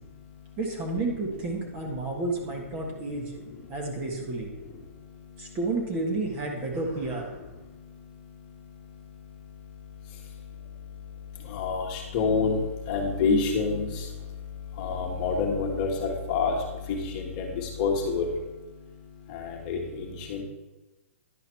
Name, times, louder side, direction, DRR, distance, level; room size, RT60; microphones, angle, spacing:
voice 1, 0.0-0.6 4.8-5.6 7.6-20.4, left 4 dB, 35° left, 1 dB, 1.4 m, -30 dB
voice 2, 0.6-3.3 3.7-4.5 5.4-7.4 14.9-15.0, right 2 dB, 25° right, 0 dB, 1.4 m, -31 dB
10.5 x 4.9 x 4.5 m, 1.1 s
hypercardioid pair, 150°, 8 cm